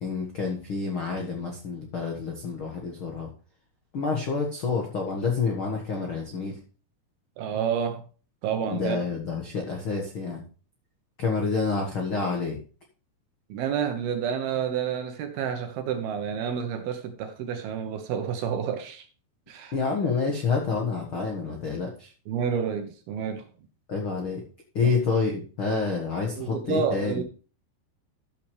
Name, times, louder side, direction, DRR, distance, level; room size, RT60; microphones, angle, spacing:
voice 1, 0.0-3.3 3.9-6.6 8.7-10.4 11.2-12.6 19.7-22.1 23.9-24.4 24.7-27.2, left 4 dB, 65° left, 1.2 m, -28 dB
voice 2, 7.4-8.0 8.4-9.0 13.5-19.1 19.5-19.8 22.3-23.5 24.8-24.9 26.3-27.2, right 7 dB, 70° right, 2.7 m, -29 dB
13.5 x 6.9 x 3.2 m
omnidirectional pair, 5.0 m